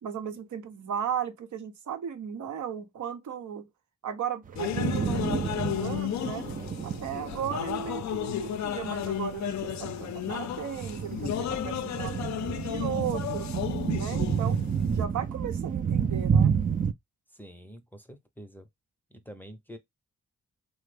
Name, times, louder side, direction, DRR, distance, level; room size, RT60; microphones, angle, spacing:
voice 1, 0.0-3.7 4.0-6.5 6.8-13.5 13.9-14.6 14.9-16.6, right 8 dB, 70° right, 0.8 m, -36 dB
sound 1, 4.5-16.9, right 7 dB, 30° right, 0.4 m, -30 dB
sound 2, 4.6-15.0, left 12 dB, 65° left, 0.4 m, -34 dB
voice 2, 17.3-18.7 19.1-19.8, equal, 5° left, 0.7 m, -47 dB
3.3 x 2.1 x 3.2 m
supercardioid pair, 50°, 30 cm